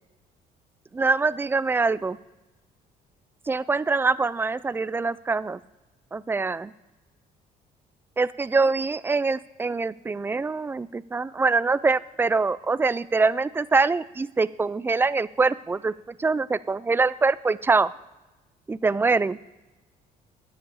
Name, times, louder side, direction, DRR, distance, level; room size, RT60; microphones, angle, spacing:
voice 1, 0.9-2.2 3.5-5.6 6.1-6.7 8.2-15.9 16.2-17.9 18.7-19.4, right 4 dB, 15° right, 18 dB, 0.3 m, -24 dB
10.0 x 9.6 x 7.0 m, 1.1 s
cardioid pair, 110°, 17 cm